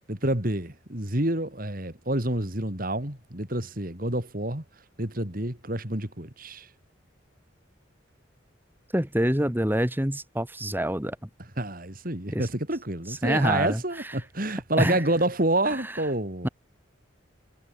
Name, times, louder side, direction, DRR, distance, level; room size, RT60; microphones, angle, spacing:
voice 1, 0.1-4.6 5.0-6.7 11.4-16.5, right 1 dB, 45° right, 3.5 m, -28 dB
voice 2, 8.9-11.2 12.3-12.4 13.2-13.8 14.8-15.0 15.8-15.9 16.4-16.5, equal, 10° right, 2.5 m, -25 dB
head